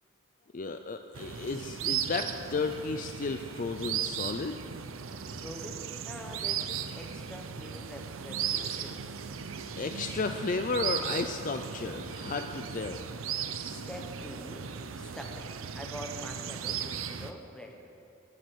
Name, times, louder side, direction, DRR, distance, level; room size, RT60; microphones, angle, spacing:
voice 1, 0.5-4.6 9.8-13.0, left 4 dB, 40° left, 7 dB, 0.4 m, -33 dB
sound 1, 1.1-17.3, right 8 dB, 75° right, 0.6 m, -37 dB
voice 2, 5.4-9.1 13.7-17.9, equal, 5° left, 1 dB, 1.2 m, -45 dB
16.5 x 7.6 x 7.8 m, 2.6 s
head